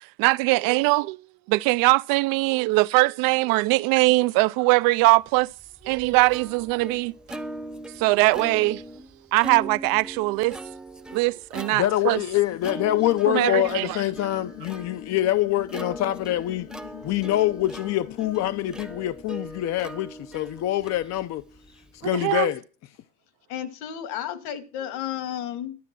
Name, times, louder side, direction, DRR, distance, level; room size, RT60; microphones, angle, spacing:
voice 1, 0.2-1.2 1.5-5.5 5.8-7.4 8.0-8.8 9.3-10.6 11.1-12.2 13.3-14.0 22.1-22.5, right 23 dB, 60° right, 0.5 m, -21 dB
Plucked string instrument, 5.4-22.1, right 1 dB, ahead, 0.8 m, -41 dB
voice 2, 11.7-16.7 17.0-21.4 21.9-22.6, left 14 dB, 40° left, 0.7 m, -25 dB
sound 1, 12.5-19.0, left 18 dB, 80° left, 1.1 m, -44 dB
voice 3, 13.3-13.8 23.5-25.8, left 10 dB, 65° left, 2.3 m, -32 dB
12.0 x 9.8 x 6.1 m
supercardioid pair, 125°, 40 cm